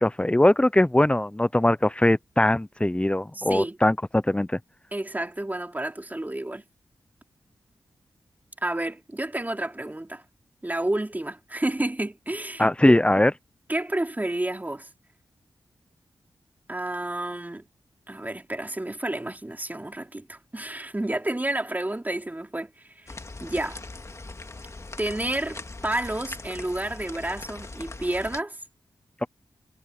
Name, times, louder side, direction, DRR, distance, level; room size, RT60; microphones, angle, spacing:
voice 1, 0.0-4.5 12.6-13.3, left 1 dB, 15° left, 0.8 m, -21 dB
voice 2, 3.3-3.8 4.9-6.6 8.6-10.2 10.6-12.7 13.7-14.9 16.7-17.6 18.1-23.1 23.4-23.8 25.0-28.6, right 1 dB, 20° right, 4.4 m, -30 dB
sound 1, 23.1-28.4, left 2 dB, 35° left, 2.1 m, -40 dB
cardioid pair, 50°, 8 cm